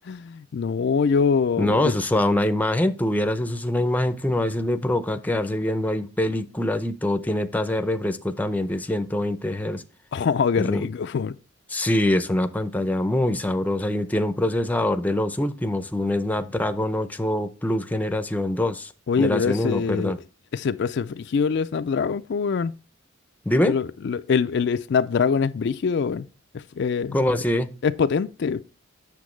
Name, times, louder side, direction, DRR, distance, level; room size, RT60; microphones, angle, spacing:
voice 1, 0.0-1.9 10.1-11.4 19.1-20.1 20.5-22.7 23.6-26.3 26.5-27.2 27.8-28.6, left 5 dB, 60° left, 0.4 m, -24 dB
voice 2, 1.6-9.8 10.6-10.9 11.7-18.9 19.2-20.2 23.5-23.7 27.1-27.7, left 1 dB, 10° left, 0.6 m, -24 dB
8.3 x 6.8 x 3.1 m
head